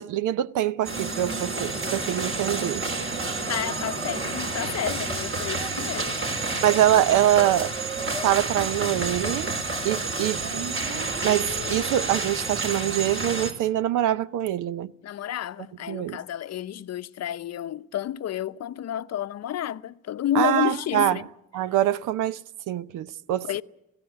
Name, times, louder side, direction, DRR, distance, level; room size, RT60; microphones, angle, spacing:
voice 1, 0.0-2.8 6.6-7.7 8.2-9.5 9.8-10.5 11.2-14.9 15.9-16.2 20.3-21.2 21.5-23.6, right 12 dB, 85° right, 0.7 m, -24 dB
sound 1, 0.8-13.5, right 3 dB, 40° right, 3.6 m, -29 dB
voice 2, 3.5-6.3 15.0-21.2 23.4-23.6, left 11 dB, 60° left, 0.7 m, -30 dB
sound 2, 10.4-12.4, right 3 dB, 65° right, 2.2 m, -38 dB
19.0 x 16.0 x 9.7 m
cardioid pair, 90°, 30 cm